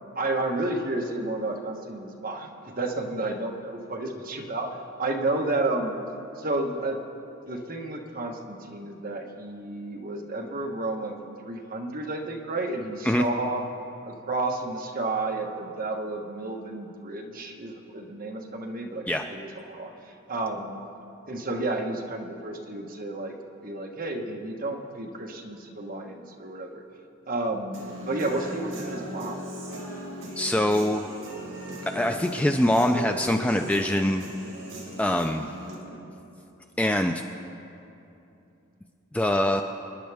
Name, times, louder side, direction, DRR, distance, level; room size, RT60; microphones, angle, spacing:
voice 1, 0.1-4.7 5.0-6.0 6.4-7.0 7.5-11.1 11.4-13.6 14.0-20.7 21.3-23.3 23.6-26.8 27.3-29.4, right 2 dB, 40° right, 1 dB, 1.3 m, -31 dB
Human voice / Guitar, 27.7-35.7, right 1 dB, 65° right, 4.0 m, -38 dB
voice 2, 30.4-31.0 31.9-34.2 35.0-35.5 36.8-37.2 39.1-39.6, left 1 dB, 5° left, 4 dB, 0.3 m, -23 dB
28.0 x 10.0 x 3.5 m, 2.8 s
head